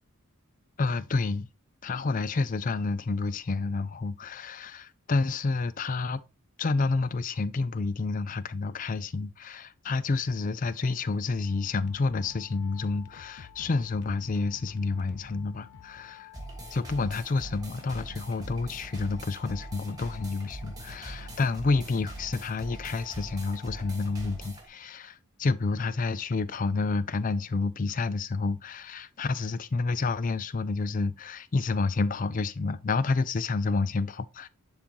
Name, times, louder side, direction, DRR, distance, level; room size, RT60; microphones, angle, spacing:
voice 1, 0.8-1.5 1.8-6.2 6.6-16.3 16.7-34.5, left 3 dB, 35° left, 0.4 m, -29 dB
sound 1, 11.4-24.5, left 6 dB, 90° left, 0.6 m, -50 dB
sound 2, 16.3-24.7, right 2 dB, 15° right, 1.5 m, -43 dB
10.5 x 3.7 x 2.9 m
head